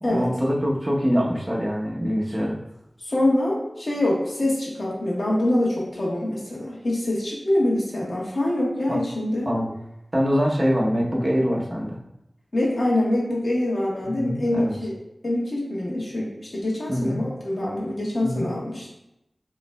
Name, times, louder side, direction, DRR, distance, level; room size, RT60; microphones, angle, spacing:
voice 1, 0.0-2.6 8.9-9.0 9.5-9.7 10.1-12.0 14.0-14.8 16.9-17.2 18.2-18.5, equal, 30° right, -3 dB, 0.9 m, -24 dB
voice 2, 3.0-9.5 12.5-14.9 15.2-18.9, left 1 dB, 65° left, -5 dB, 1.3 m, -25 dB
5.7 x 3.0 x 2.2 m, 0.86 s
wide cardioid pair, 60°, 0 cm